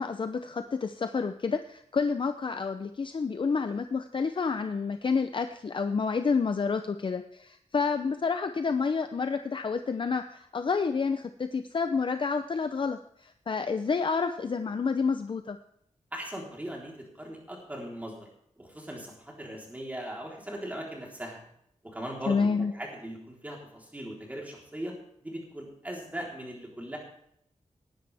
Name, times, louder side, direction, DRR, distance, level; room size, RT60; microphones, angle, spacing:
voice 1, 0.0-15.6 22.3-22.7, left 5 dB, 45° left, 9 dB, 0.6 m, -29 dB
voice 2, 16.1-18.3 18.6-21.4 21.8-24.9 25.2-27.0, right 1 dB, 10° right, -2 dB, 3.8 m, -39 dB
19.0 x 10.5 x 3.5 m, 0.70 s
wide cardioid pair, 160°, 12 cm